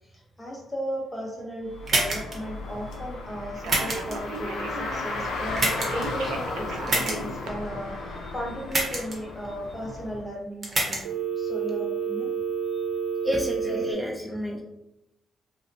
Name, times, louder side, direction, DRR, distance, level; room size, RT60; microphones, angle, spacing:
voice 1, 0.4-12.3 13.6-14.0 14.4-14.6, equal, 15° left, -2 dB, 0.8 m, -36 dB
Car, 1.7-10.2, left 2 dB, 85° left, 0.5 m, -35 dB
sound 1, 1.9-2.4 3.7-4.1 5.6-6.0 6.9-7.2 8.7-9.2 10.6-11.0, right 2 dB, 40° right, 0.9 m, -25 dB
Telephone, 3.6-5.2 5.9-7.5 11.0-13.9, right 6 dB, 85° right, 0.4 m, -31 dB
voice 2, 13.2-14.6, equal, 5° right, -3 dB, 0.4 m, -30 dB
2.7 x 2.1 x 2.6 m, 0.90 s
cardioid pair, 90°, 0 cm